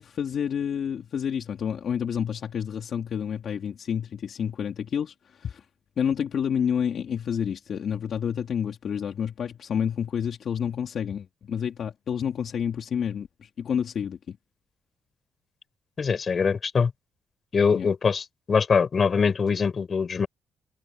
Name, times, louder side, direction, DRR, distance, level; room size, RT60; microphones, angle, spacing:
voice 1, 0.0-5.6 6.0-14.4 17.7-17.9, left 8 dB, 60° left, 3.3 m, -29 dB
voice 2, 16.0-16.9 17.5-20.3, left 5 dB, 40° left, 5.0 m, -23 dB
cardioid pair, 90°, 0 cm